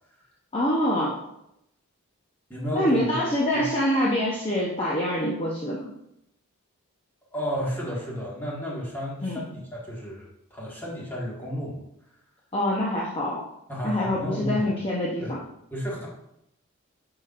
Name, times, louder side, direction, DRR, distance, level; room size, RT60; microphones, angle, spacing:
voice 1, 0.5-1.2 2.7-5.9 9.2-9.4 12.5-13.4 13.8-15.4, left 1 dB, 25° left, -5 dB, 0.9 m, -25 dB
voice 2, 2.5-3.1 3.5-3.7 7.3-11.8 13.7-14.8 15.2-15.4 15.7-16.1, equal, 10° left, -5 dB, 1.8 m, -32 dB
9.6 x 5.9 x 2.5 m, 0.80 s
head